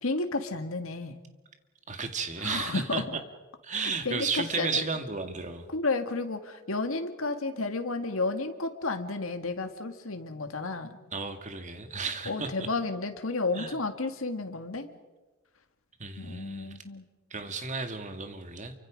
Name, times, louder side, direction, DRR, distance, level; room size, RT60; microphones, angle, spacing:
voice 1, 0.0-1.2 2.4-3.0 3.7-4.8 5.7-11.0 12.3-14.9 16.2-17.0, left 3 dB, 80° left, 7 dB, 2.0 m, -32 dB
voice 2, 1.9-3.2 3.6-5.7 11.1-12.7 13.5-13.7 16.0-16.7 17.3-18.7, right 4 dB, 35° right, 7 dB, 2.1 m, -33 dB
28.5 x 24.5 x 5.3 m, 1.2 s
head